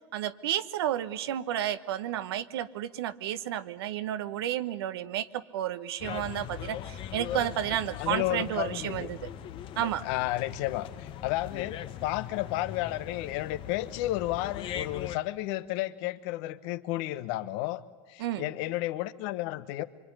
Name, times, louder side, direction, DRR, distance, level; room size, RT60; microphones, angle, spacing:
voice 1, 0.1-9.3 9.8-10.0 18.2-18.4, right 11 dB, 85° right, 11 dB, 1.1 m, -32 dB
sound 1, 6.0-15.2, left 10 dB, 45° left, 1.1 m, -40 dB
voice 2, 8.0-9.1 9.7-17.8 18.1-19.8, left 16 dB, 65° left, 12 dB, 1.3 m, -32 dB
24.5 x 24.0 x 9.9 m, 1.3 s
supercardioid pair, 120°, 13 cm